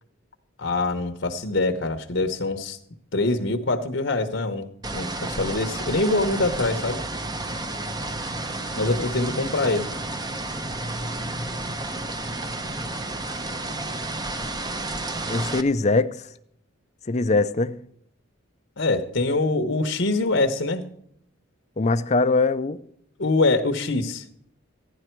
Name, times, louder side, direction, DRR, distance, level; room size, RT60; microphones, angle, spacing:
voice 1, 0.6-2.8 3.1-7.0 8.8-9.9 18.8-20.9 23.2-24.2, left 2 dB, 65° left, 1.0 m, -24 dB
sound 1, 4.8-15.6, right 2 dB, 20° right, 0.8 m, -31 dB
sound 2, 7.2-14.0, equal, 70° right, 5.4 m, -45 dB
voice 2, 15.3-16.2 17.1-17.8 21.8-22.8, left 3 dB, 35° left, 0.6 m, -22 dB
15.0 x 11.0 x 4.6 m
head